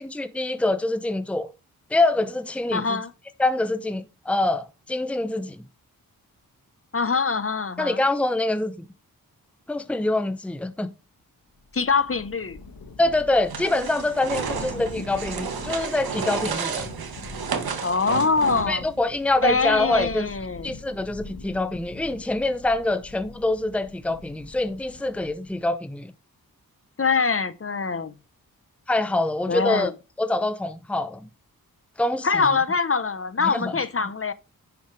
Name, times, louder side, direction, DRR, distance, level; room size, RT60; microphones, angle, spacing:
voice 1, 0.0-1.5 1.9-3.0 3.4-5.7 7.8-8.8 9.7-10.9 13.0-16.8 18.7-20.3 20.6-26.1 28.9-29.9 30.2-31.3 32.0-32.5 33.4-33.8, left 2 dB, 5° left, 0.8 m, -25 dB
voice 2, 2.7-3.1 6.9-8.0 11.7-12.6 17.8-18.8 19.4-20.7 27.0-28.1 29.5-29.9 32.2-34.3, left 4 dB, 35° left, 0.9 m, -24 dB
Thunder / Rain, 11.5-25.6, left 3 dB, 70° left, 1.9 m, -43 dB
sound 1, 13.5-18.9, right 6 dB, 80° right, 1.5 m, -31 dB
9.8 x 7.1 x 3.3 m
cardioid pair, 60°, 36 cm